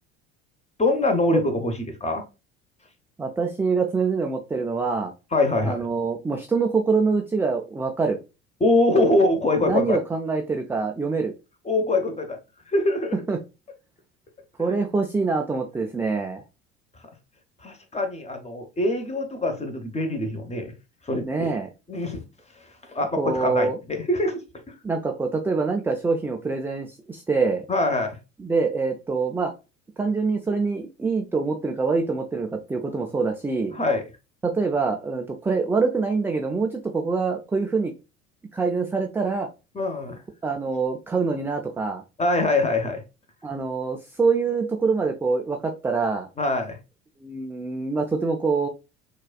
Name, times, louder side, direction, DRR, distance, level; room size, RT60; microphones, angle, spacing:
voice 1, 0.8-2.2 5.3-5.8 8.6-10.0 11.7-12.4 12.7-13.2 14.7-14.8 17.6-20.7 21.1-21.5 21.9-22.2 22.9-24.4 24.7-24.8 27.7-28.2 33.7-34.0 39.7-40.2 42.2-43.0 46.4-46.8, left 2 dB, 15° left, 0.9 m, -23 dB
voice 2, 3.2-5.1 5.6-8.2 9.6-11.3 13.3-13.4 14.6-16.4 21.2-21.7 23.2-23.8 24.8-27.7 28.4-29.5 30.0-33.8 34.4-37.9 38.5-39.5 40.4-42.0 43.4-46.3 47.2-48.7, right 4 dB, 5° right, 0.4 m, -25 dB
6.3 x 2.4 x 2.3 m
figure-of-eight pair, 65°, 38 cm